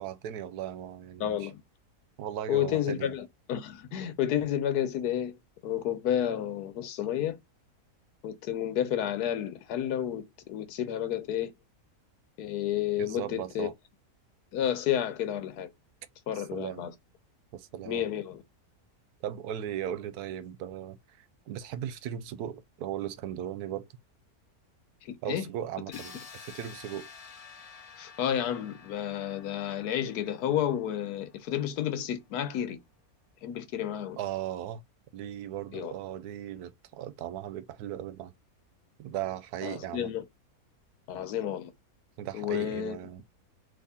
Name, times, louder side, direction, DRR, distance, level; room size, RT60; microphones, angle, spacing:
voice 1, 0.0-1.5 2.2-3.1 13.0-13.7 16.3-16.9 17.5-18.1 19.2-23.9 25.2-27.1 34.2-34.8 35.1-38.3 39.0-40.1 42.2-43.2, right 11 dB, 85° right, 1.1 m, -37 dB
voice 2, 1.2-1.6 2.5-5.4 5.6-7.4 8.2-11.5 12.4-13.7 14.5-15.7 16.3-16.9 17.9-18.4 25.0-25.4 28.0-32.8 33.4-34.2 35.7-35.9 39.6-40.2 41.1-41.7 42.3-43.0, left 10 dB, 85° left, 1.3 m, -31 dB
sound 1, 25.9-31.7, left 5 dB, 40° left, 0.5 m, -50 dB
3.6 x 3.0 x 4.1 m
omnidirectional pair, 1.6 m